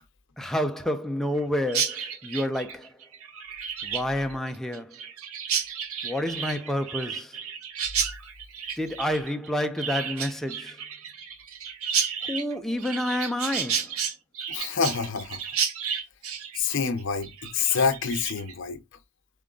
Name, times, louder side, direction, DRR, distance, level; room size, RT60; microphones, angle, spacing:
voice 1, 0.4-2.9 3.8-5.0 6.0-7.4 8.8-10.8 12.2-13.9, left 1 dB, ahead, 0.4 m, -29 dB
Chirp tweet, 1.7-18.5, right 7 dB, 65° right, 0.7 m, -32 dB
voice 2, 14.5-15.4 16.6-18.8, left 6 dB, 55° left, 0.7 m, -27 dB
3.8 x 3.5 x 3.7 m
head